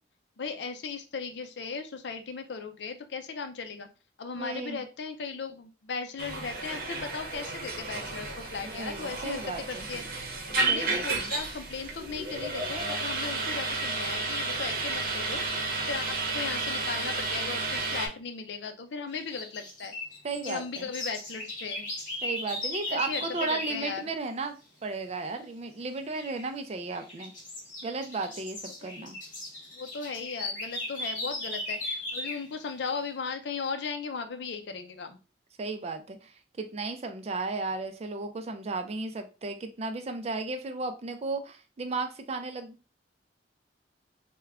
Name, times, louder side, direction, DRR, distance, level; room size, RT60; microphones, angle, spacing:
voice 1, 0.4-3.9 4.2-10.2 10.5-19.9 20.4-21.9 22.9-24.0 29.0-29.1 29.7-35.2, left 5 dB, 70° left, 7 dB, 0.5 m, -37 dB
voice 2, 4.3-4.8 8.6-9.9 10.7-11.3 20.2-20.9 22.2-27.3 27.8-29.2 35.6-43.0, right 3 dB, 35° right, 6 dB, 0.4 m, -35 dB
sound 1, 6.2-18.1, right 3 dB, 55° right, 0.8 m, -32 dB
sound 2, 19.1-23.9 26.1-26.4 26.9-32.5, left 1 dB, 50° left, 1.6 m, -37 dB
3.4 x 2.2 x 3.5 m, 0.32 s
head